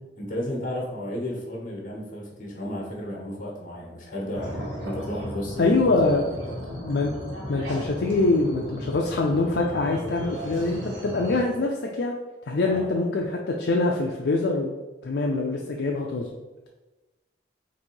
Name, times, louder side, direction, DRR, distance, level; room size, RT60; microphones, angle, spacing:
voice 1, 0.2-6.5 12.6-12.9, left 1 dB, 45° left, -2 dB, 1.2 m, -33 dB
sound 1, 4.3-11.4, equal, 85° right, 1.2 m, -36 dB
voice 2, 5.6-6.4 6.7-7.1 7.5-12.1 12.5-14.8 15.0-16.3, left 2 dB, 60° left, 0 dB, 0.4 m, -24 dB
4.1 x 2.6 x 4.5 m, 1.1 s
head